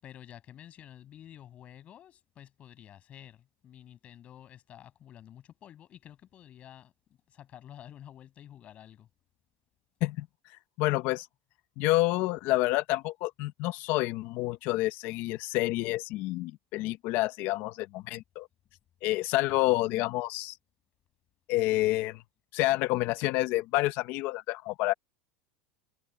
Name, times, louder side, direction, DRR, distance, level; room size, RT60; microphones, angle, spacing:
voice 1, 0.0-6.9 7.3-9.1, left 11 dB, 25° left, 7.2 m, -50 dB
voice 2, 10.8-11.3 11.8-18.5 19.0-20.6 21.5-22.2 22.5-24.9, left 18 dB, 45° left, 0.9 m, -28 dB
supercardioid pair, 170°, 5 cm